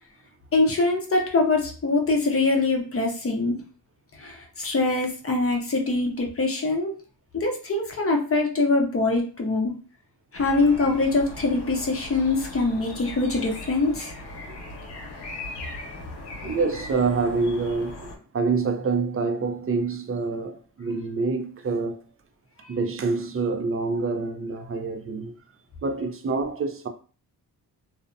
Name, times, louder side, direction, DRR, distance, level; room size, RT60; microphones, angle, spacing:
voice 1, 0.5-3.6 4.2-6.9 7.3-9.7 10.3-14.1, left 3 dB, 35° left, 0.7 m, -23 dB
sound 1, 10.3-18.2, left 2 dB, 75° left, 0.9 m, -39 dB
voice 2, 16.4-22.1 22.7-25.3 25.8-26.9, right 4 dB, 35° right, 0.4 m, -26 dB
2.6 x 2.1 x 2.6 m
cardioid pair, 80°, 42 cm